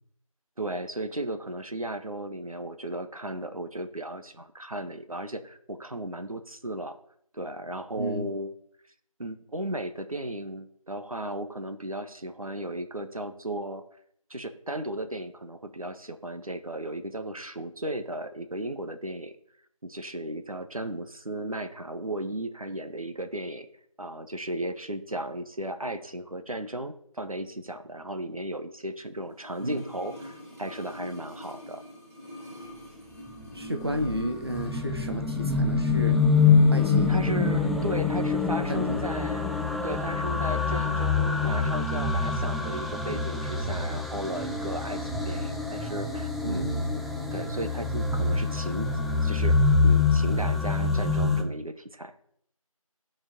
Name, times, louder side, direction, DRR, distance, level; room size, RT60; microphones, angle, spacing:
voice 1, 0.6-7.0 7.3-8.5 9.2-13.8 14.3-19.3 19.8-23.7 24.0-31.8 36.7-39.4 39.8-45.0 45.2-48.9 49.2-52.1, right 1 dB, 75° right, 8 dB, 0.9 m, -35 dB
sound 1, 29.3-34.8 35.1-35.2, left 1 dB, 30° left, 2.4 m, -44 dB
sound 2, 33.4-51.4, left 4 dB, ahead, 0.4 m, -25 dB
voice 2, 33.5-36.2 36.7-37.1 38.7-39.1 46.4-46.9, equal, 45° right, 4 dB, 0.8 m, -32 dB
10.5 x 4.4 x 3.7 m, 0.66 s
figure-of-eight pair, 180°, 18 cm